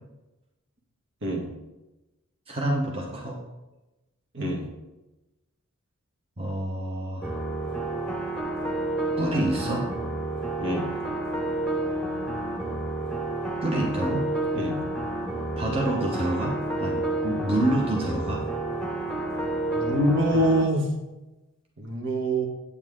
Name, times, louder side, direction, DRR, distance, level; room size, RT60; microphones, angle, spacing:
voice 1, 2.5-3.4 6.4-7.4 9.2-9.9 13.6-14.3 15.6-18.4, right 1 dB, 25° right, -2 dB, 1.2 m, -27 dB
sound 1, 7.2-20.6, right 2 dB, 5° left, 1.0 m, -30 dB
voice 2, 14.5-14.8 19.7-20.9 21.8-22.5, right 1 dB, 55° right, 1 dB, 1.8 m, -25 dB
8.9 x 8.7 x 3.8 m, 1.0 s
head